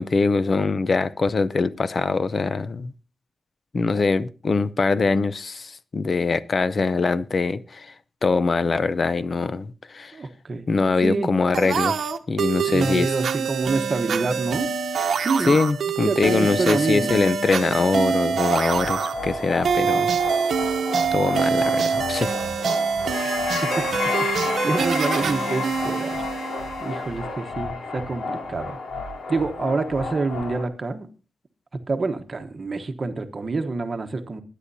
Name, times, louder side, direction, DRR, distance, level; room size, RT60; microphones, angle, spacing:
voice 1, 0.0-2.9 3.7-7.9 8.2-10.2 10.7-12.0 12.3-13.1 15.5-20.1 21.1-22.3, left 4 dB, 45° left, 0.6 m, -23 dB
voice 2, 10.1-10.7 11.0-11.3 12.7-14.7 15.2-15.6 16.0-17.2 23.2-23.9 24.3-26.2 26.8-28.8 29.3-31.1 31.9-34.4, right 3 dB, 40° right, 1.1 m, -27 dB
sound 1, 11.5-27.0, right 6 dB, 90° right, 0.9 m, -25 dB
sound 2, 18.4-30.6, left 4 dB, 90° left, 2.8 m, -30 dB
21.0 x 10.0 x 2.7 m
wide cardioid pair, 130°, 0 cm